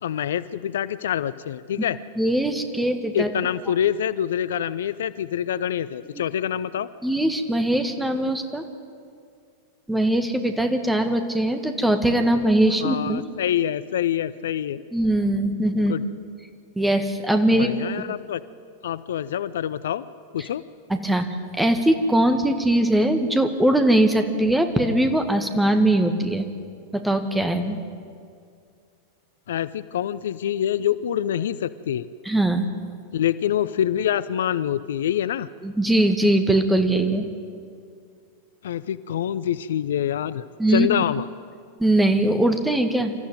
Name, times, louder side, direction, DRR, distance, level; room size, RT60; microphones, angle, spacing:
voice 1, 0.0-2.0 3.1-6.9 12.8-14.8 15.8-16.0 17.6-18.4 18.8-20.0 20.3-20.6 29.5-32.1 33.1-35.5 38.6-40.4 40.7-41.3, left 10 dB, 60° left, 16 dB, 0.5 m, -26 dB
voice 2, 2.2-3.3 7.0-8.6 9.9-13.3 14.9-15.9 16.8-17.7 20.4-20.5 20.9-21.3 21.5-26.5 26.9-27.8 32.3-32.7 35.6-37.3 40.6-40.9 41.8-43.2, right 1 dB, 5° right, 7 dB, 1.9 m, -21 dB
26.5 x 14.0 x 9.2 m, 2.3 s
figure-of-eight pair, 90°, 0 cm